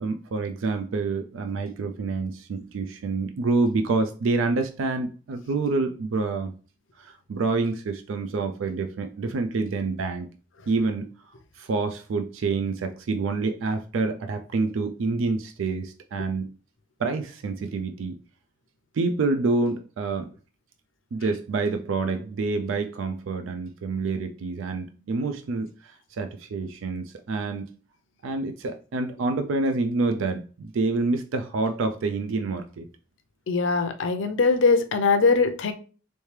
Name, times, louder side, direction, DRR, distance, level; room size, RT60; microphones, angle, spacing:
voice 1, 0.0-6.6 7.0-10.3 10.7-11.1 11.6-16.5 17.0-18.2 18.9-20.3 21.1-27.7 28.2-32.9, right 3 dB, 80° right, 0.4 m, -27 dB
voice 2, 33.5-35.7, left 4 dB, 70° left, 0.5 m, -21 dB
3.2 x 3.1 x 3.2 m
head